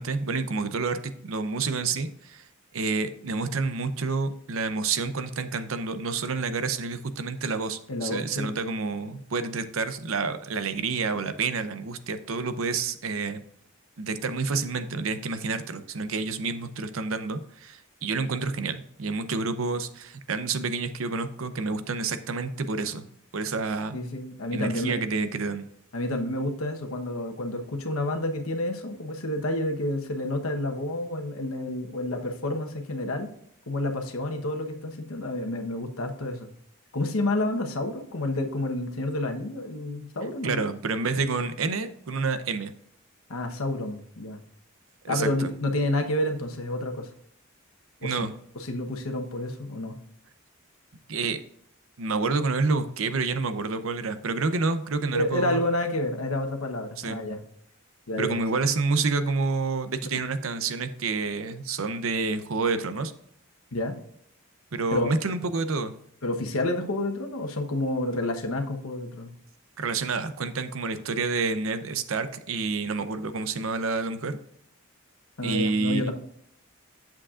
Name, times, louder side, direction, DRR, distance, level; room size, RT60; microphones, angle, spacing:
voice 1, 0.0-2.5 2.7-13.4 14.0-23.1 23.3-24.0 24.5-25.6 40.4-42.7 45.0-45.5 48.0-48.3 51.1-51.4 52.0-55.6 57.0-57.2 58.2-63.1 64.7-65.9 69.8-74.4 75.4-76.1, right 4 dB, 70° right, 10 dB, 0.7 m, -29 dB
voice 2, 7.9-8.6 23.9-25.0 25.9-33.3 33.7-36.5 36.9-40.6 43.3-44.4 45.1-47.1 48.0-48.2 48.5-50.0 55.1-57.4 58.1-58.4 63.7-64.0 64.9-65.1 66.2-69.3 75.4-76.1, left 1 dB, 80° left, 4 dB, 1.1 m, -29 dB
8.6 x 7.4 x 2.5 m, 0.70 s
head